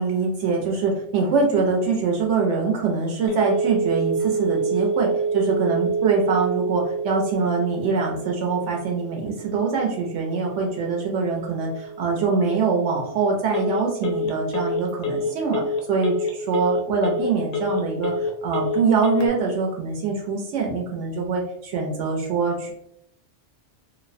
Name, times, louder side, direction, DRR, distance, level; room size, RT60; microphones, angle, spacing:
voice 1, 0.0-15.6 15.9-22.7, right 4 dB, 80° right, 0 dB, 0.9 m, -24 dB
Telephone, 3.3-19.3, right 2 dB, 60° left, 0.4 m, -28 dB
2.6 x 2.0 x 2.5 m, 0.74 s
omnidirectional pair, 1.2 m